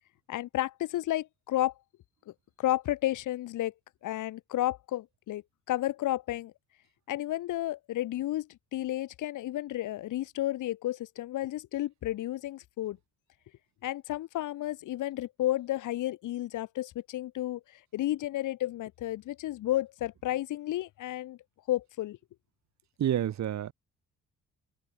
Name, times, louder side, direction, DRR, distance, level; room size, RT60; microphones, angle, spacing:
voice 1, 0.3-1.7 2.6-3.7 4.0-5.4 5.7-6.5 7.1-13.0 13.8-21.4 21.7-22.2, left 14 dB, 80° left, 2.5 m, -32 dB
voice 2, 23.0-23.7, right 11 dB, 65° right, 2.1 m, -28 dB
open air
cardioid pair, 90°, 30 cm